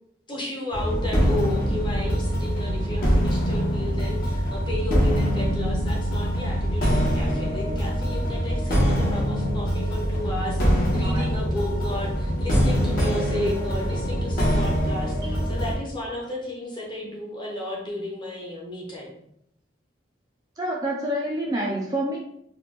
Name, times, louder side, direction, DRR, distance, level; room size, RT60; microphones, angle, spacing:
voice 1, 0.3-19.2, left 1 dB, 25° left, -3 dB, 0.8 m, -33 dB
sound 1, 0.7-15.7, equal, 50° left, 1.1 m, -24 dB
voice 2, 20.6-22.2, right 1 dB, 20° right, -3 dB, 0.4 m, -27 dB
4.1 x 2.3 x 2.9 m, 0.73 s
head